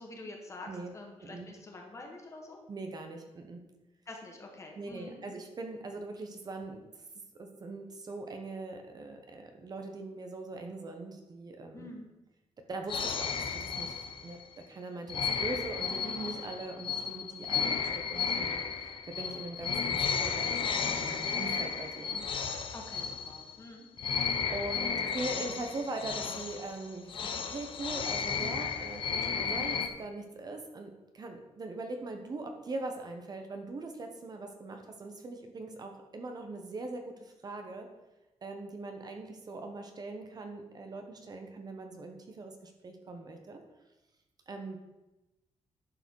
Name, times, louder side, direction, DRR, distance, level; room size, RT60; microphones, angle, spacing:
voice 1, 0.0-2.6 4.1-5.2 11.7-12.1 17.5-17.8 22.7-23.9, left 2 dB, 25° left, 1 dB, 1.9 m, -46 dB
voice 2, 2.7-3.6 4.7-6.8 7.4-11.9 12.7-14.4 14.7-22.2 24.5-37.9 38.4-43.6 44.5-44.8, right 2 dB, 35° right, 4 dB, 1.0 m, -41 dB
sound 1, 12.9-14.5 15.1-23.7 24.0-29.9, left 6 dB, 50° left, 0.8 m, -33 dB
11.0 x 4.9 x 6.3 m, 1.0 s
wide cardioid pair, 150°, 11 cm